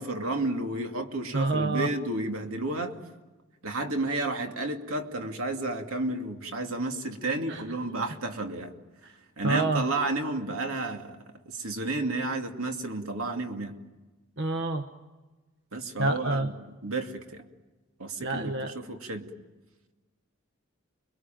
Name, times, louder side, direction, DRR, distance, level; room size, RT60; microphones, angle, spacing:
voice 1, 0.0-3.0 3.6-8.7 9.4-11.2 11.5-13.8 15.7-16.5 16.8-17.4 18.0-19.3, right 2 dB, 85° right, 4 dB, 2.6 m, -31 dB
voice 2, 1.3-1.9 7.5-7.6 9.4-9.8 14.4-14.9 16.0-16.5 18.2-18.8, right 2 dB, 55° right, 7 dB, 1.2 m, -27 dB
29.5 x 21.5 x 9.2 m, 1.2 s
head